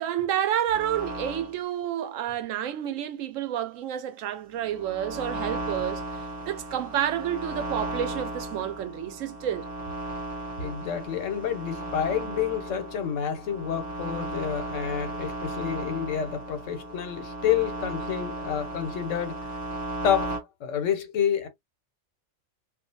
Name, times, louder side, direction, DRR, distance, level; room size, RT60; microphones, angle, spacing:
voice 1, 0.0-9.7, right 10 dB, 90° right, 1.0 m, -30 dB
sound 1, 0.7-1.6 4.6-20.4, right 2 dB, 15° right, 1.4 m, -35 dB
voice 2, 10.6-19.5 20.0-21.5, left 9 dB, 80° left, 1.0 m, -29 dB
2.4 x 2.3 x 2.6 m
omnidirectional pair, 1.3 m